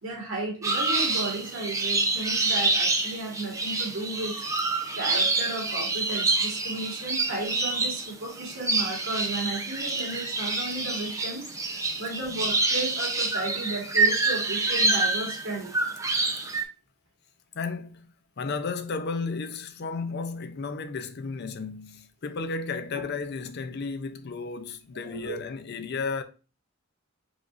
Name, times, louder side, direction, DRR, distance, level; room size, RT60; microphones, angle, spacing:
voice 1, 0.0-4.3 5.0-11.4 12.0-15.8 25.0-25.4, right 2 dB, 75° right, 1.9 m, -34 dB
sound 1, 0.6-16.6, right 3 dB, 15° right, 0.7 m, -27 dB
voice 2, 17.5-18.1 18.4-26.2, left 4 dB, 50° left, 0.5 m, -33 dB
4.9 x 4.0 x 2.5 m
head